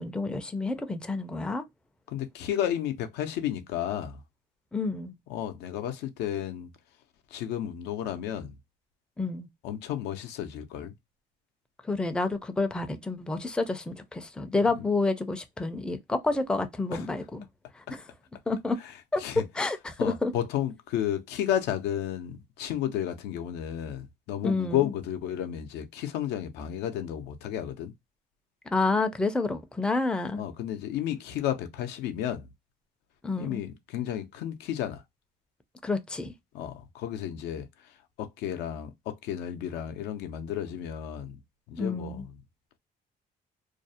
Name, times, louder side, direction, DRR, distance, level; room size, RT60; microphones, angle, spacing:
voice 1, 0.0-1.6 4.7-5.2 9.2-9.5 11.8-17.4 17.7-18.0 18.5-18.8 19.1-19.2 19.6-20.3 24.4-24.8 28.7-30.4 33.2-33.6 35.8-36.3 41.8-42.2, left 3 dB, 5° left, 0.4 m, -29 dB
voice 2, 2.1-4.2 5.3-6.7 7.3-8.6 9.6-10.9 16.9-17.1 18.8-18.9 19.2-19.4 20.0-27.9 30.4-32.5 33.4-35.0 36.5-41.4 41.7-42.4, left 10 dB, 90° left, 0.5 m, -32 dB
2.5 x 2.0 x 2.6 m
cardioid pair, 110°, 17 cm